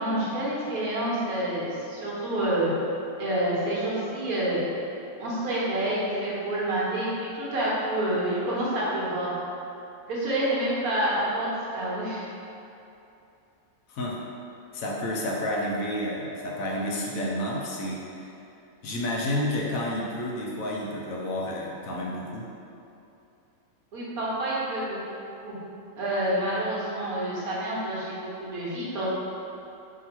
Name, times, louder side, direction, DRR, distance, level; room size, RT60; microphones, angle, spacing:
voice 1, 0.0-2.7 3.2-4.6 5.2-9.3 10.1-12.3 23.9-25.0 25.4-25.6 26.0-29.1, right 1 dB, 85° right, -7 dB, 1.4 m, -28 dB
voice 2, 13.9-14.2 14.7-18.3 18.8-22.5, left 1 dB, 75° left, -3 dB, 1.0 m, -30 dB
5.0 x 2.8 x 2.9 m, 2.8 s
omnidirectional pair, 1.5 m